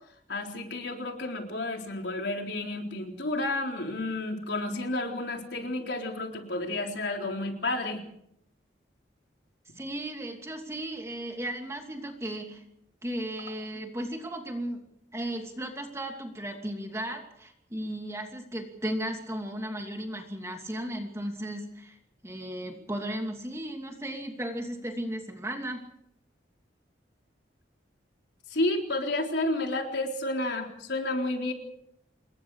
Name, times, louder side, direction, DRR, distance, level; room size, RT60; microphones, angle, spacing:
voice 1, 0.3-8.0 28.5-31.5, left 2 dB, 70° left, 2 dB, 3.9 m, -31 dB
voice 2, 9.7-12.6 13.0-14.8 15.1-22.0 22.2-25.8, right 1 dB, 15° right, 3 dB, 2.7 m, -35 dB
27.5 x 21.5 x 4.9 m, 0.74 s
head